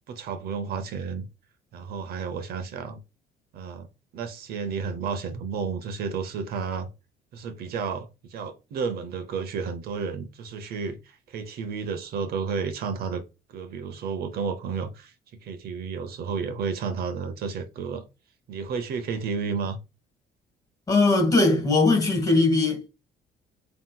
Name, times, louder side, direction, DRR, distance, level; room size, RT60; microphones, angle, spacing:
voice 1, 0.1-1.3 1.7-3.0 3.5-3.9 4.1-6.9 7.3-13.2 13.5-15.1 15.4-18.0 18.5-19.8, right 5 dB, 65° right, 0.7 m, -32 dB
voice 2, 20.9-22.9, left 3 dB, 20° left, 1.8 m, -20 dB
7.4 x 2.9 x 2.3 m
cardioid pair, 110°, 17 cm